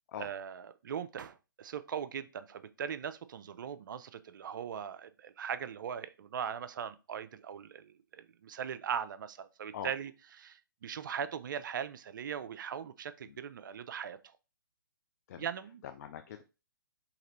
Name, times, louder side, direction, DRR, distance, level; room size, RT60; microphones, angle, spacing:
voice 1, 0.2-10.1 10.4-14.2 15.4-15.8, right 8 dB, 60° right, 0.4 m, -40 dB
voice 2, 15.8-16.4, left 9 dB, 45° left, 0.4 m, -43 dB
3.8 x 2.9 x 3.0 m
hypercardioid pair, 135°, 12 cm